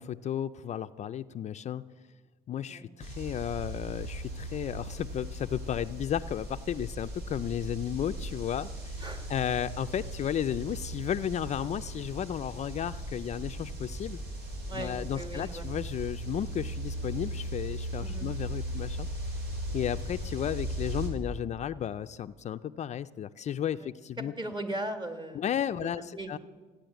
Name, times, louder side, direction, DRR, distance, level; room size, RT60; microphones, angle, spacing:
voice 1, 0.0-1.8 2.5-14.2 14.7-19.1 19.7-24.3 25.3-26.4, left 10 dB, 45° left, 10 dB, 0.4 m, -33 dB
sound 1, 3.0-21.1, right 1 dB, 75° right, 4.4 m, -38 dB
voice 2, 9.0-9.3 14.7-15.7 18.0-18.3 23.8-23.9 24.2-25.4 25.8-26.4, right 1 dB, 25° right, 7 dB, 2.0 m, -38 dB
15.0 x 10.0 x 9.0 m, 1.4 s
cardioid pair, 110°, 17 cm